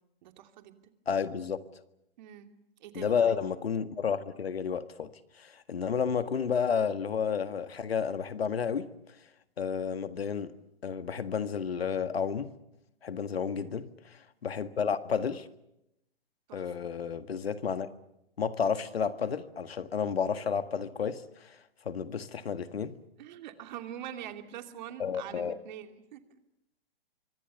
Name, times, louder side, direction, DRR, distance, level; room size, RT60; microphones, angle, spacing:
voice 1, 0.2-0.9 2.2-2.5 2.8-3.4 13.3-13.8 16.5-16.8 23.2-26.2, right 10 dB, 50° right, 2.8 m, -44 dB
voice 2, 1.1-1.6 3.0-5.1 5.4-8.9 9.6-10.5 10.8-12.5 13.0-15.5 16.5-17.9 18.4-21.6 21.9-22.9 25.0-25.5, left 6 dB, 80° left, 1.7 m, -31 dB
26.0 x 24.5 x 7.0 m
hypercardioid pair, 130°, 30 cm